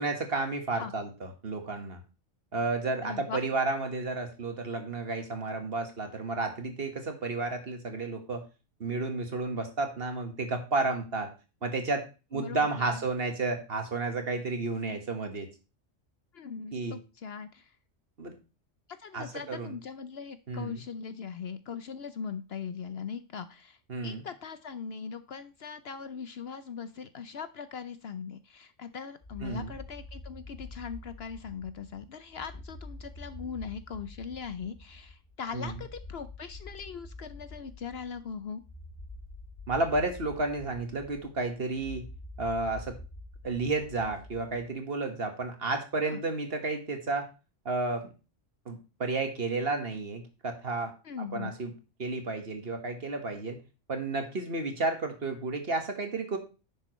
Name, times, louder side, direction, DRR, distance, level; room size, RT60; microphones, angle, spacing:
voice 1, 0.0-2.0 2.5-8.4 8.8-11.3 11.6-15.5 16.7-17.0 18.2-18.4 19.1-19.7 20.5-20.8 23.9-24.2 29.4-29.7 35.5-35.7 39.7-42.1 42.4-43.0 43.4-47.3 47.7-48.1 48.7-50.9 51.3-51.7 52.0-53.6 53.9-56.4, right 3 dB, 50° right, 5 dB, 1.8 m, -32 dB
voice 2, 3.0-3.4 12.3-13.0 16.3-17.7 19.0-38.6 46.0-46.2 51.0-51.5, left 6 dB, 60° left, 12 dB, 0.8 m, -40 dB
sound 1, 29.2-44.8, left 2 dB, 35° left, 2.4 m, -47 dB
10.5 x 7.5 x 3.1 m, 0.30 s
omnidirectional pair, 1.3 m